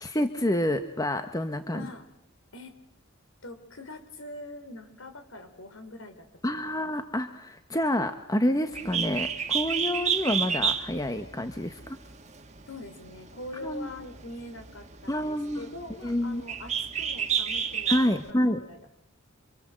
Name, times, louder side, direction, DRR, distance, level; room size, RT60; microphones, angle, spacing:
voice 1, 0.0-1.9 6.4-12.0 13.6-13.9 15.1-15.7 16.0-16.4 17.9-18.6, left 1 dB, 20° left, 7 dB, 1.4 m, -28 dB
voice 2, 1.7-2.0 2.5-2.7 3.4-6.9 12.7-18.9, left 1 dB, 75° left, 7 dB, 4.9 m, -43 dB
Bird, 8.7-18.3, right 7 dB, 35° right, 1.8 m, -31 dB
27.5 x 26.0 x 7.8 m, 0.81 s
head